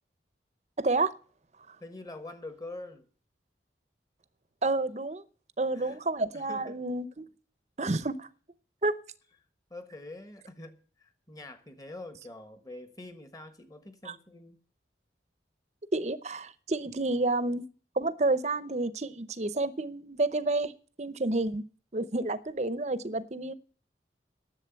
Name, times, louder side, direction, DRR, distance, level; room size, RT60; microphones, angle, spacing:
voice 1, 0.8-1.1 1.7-1.8 4.6-5.2 5.6-7.2 7.8-8.3 8.8-8.9 14.0-14.1 15.9-17.6 18.0-20.7 21.0-21.6 21.9-23.5, right 2 dB, 40° right, 15 dB, 0.7 m, -29 dB
voice 2, 1.8-3.1 5.7-6.0 6.3-6.8 9.7-14.6, left 2 dB, 20° left, 9 dB, 1.3 m, -45 dB
11.0 x 7.6 x 8.9 m, 0.42 s
head